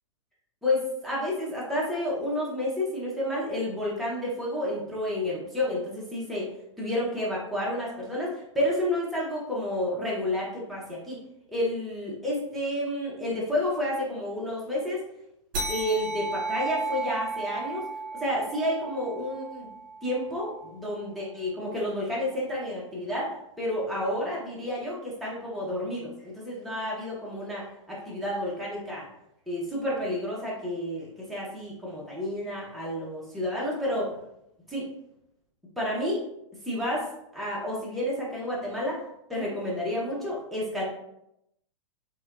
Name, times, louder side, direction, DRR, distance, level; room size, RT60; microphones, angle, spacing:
voice 1, 0.6-6.5 6.8-11.2 11.5-15.0 15.7-17.9 18.2-19.7 20.0-29.1 29.5-34.1 34.7-34.9 35.8-36.2 36.6-37.1 37.3-39.0 39.3-40.8, left 1 dB, ahead, -7 dB, 0.9 m, -30 dB
sound 1, 15.5-20.5, right 3 dB, 45° right, 1.0 m, -34 dB
3.1 x 2.8 x 2.5 m, 0.81 s
figure-of-eight pair, 105°, 17 cm